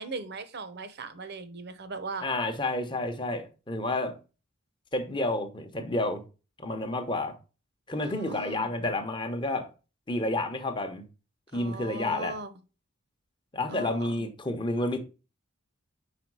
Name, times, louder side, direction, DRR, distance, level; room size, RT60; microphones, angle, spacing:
voice 1, 0.0-2.3 8.0-8.7 11.5-12.6 13.7-14.2, right 3 dB, 50° right, 0.8 m, -39 dB
voice 2, 2.2-4.2 4.9-6.2 6.6-7.3 7.9-9.7 10.1-11.0 11.5-12.3 13.5-15.0, left 2 dB, 20° left, 0.9 m, -30 dB
5.1 x 4.7 x 4.7 m
head